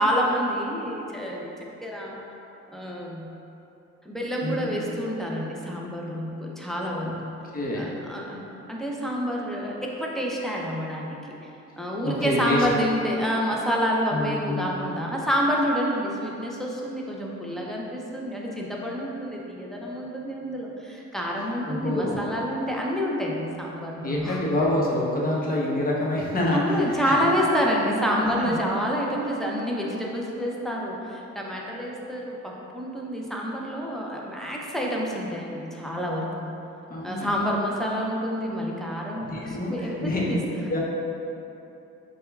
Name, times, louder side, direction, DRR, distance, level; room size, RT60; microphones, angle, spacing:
voice 1, 0.0-1.5 1.8-2.2 2.7-3.3 4.1-7.3 7.8-8.4 8.7-11.1 11.8-24.4 26.5-36.5 37.0-40.6, equal, ahead, -3 dB, 0.5 m, -28 dB
voice 2, 4.4-4.7 7.0-7.1 7.5-7.9 12.0-12.7 14.1-14.8 21.7-22.2 24.0-27.0 28.1-28.6 36.9-37.4 39.2-40.3 40.7-40.8, left 1 dB, 30° left, -4 dB, 0.8 m, -27 dB
6.7 x 2.3 x 2.3 m, 2.9 s
cardioid pair, 90°, 30 cm